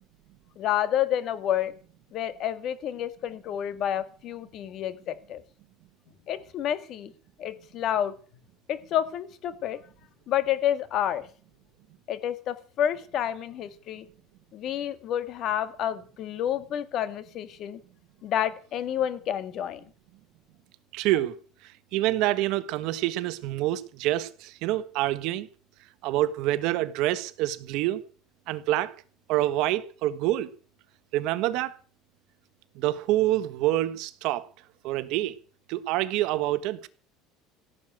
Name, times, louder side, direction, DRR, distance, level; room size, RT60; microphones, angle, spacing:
voice 1, 0.6-1.7 2.1-5.4 6.3-7.1 7.4-8.1 8.7-9.8 10.3-11.3 12.1-14.0 14.5-17.8 18.2-19.8, left 10 dB, 40° left, 1.9 m, -29 dB
voice 2, 20.9-21.3 21.9-25.5 26.0-28.0 28.5-28.9 29.3-30.5 31.1-31.8 32.7-34.5 34.8-35.3 35.7-36.9, right 15 dB, 60° right, 1.4 m, -26 dB
17.0 x 7.8 x 9.0 m
cardioid pair, 165°, 0 cm